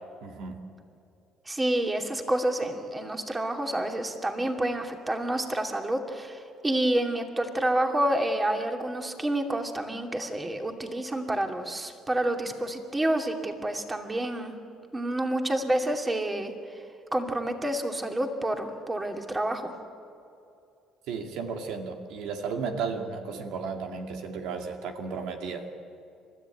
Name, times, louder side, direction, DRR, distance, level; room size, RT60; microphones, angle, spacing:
voice 1, 0.2-0.6 21.1-25.7, right 5 dB, 80° right, 4 dB, 2.2 m, -34 dB
voice 2, 1.5-14.5 14.9-16.5 17.1-19.7, right 1 dB, 15° right, 4 dB, 2.6 m, -28 dB
30.0 x 13.5 x 9.1 m, 2.6 s
cardioid pair, 95°, 0 cm